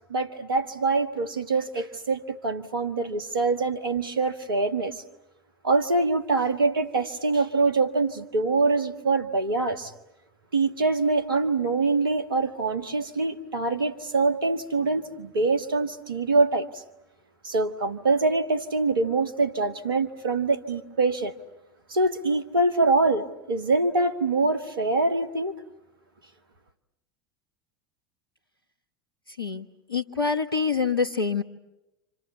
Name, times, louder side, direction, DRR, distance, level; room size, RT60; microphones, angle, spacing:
voice 1, 0.1-4.9 5.6-9.9 10.5-16.7 17.4-21.3 21.9-25.5, right 3 dB, 75° right, 1.8 m, -24 dB
voice 2, 29.4-31.4, left 5 dB, 90° left, 1.3 m, -26 dB
29.5 x 27.0 x 7.0 m
figure-of-eight pair, 75°, 12 cm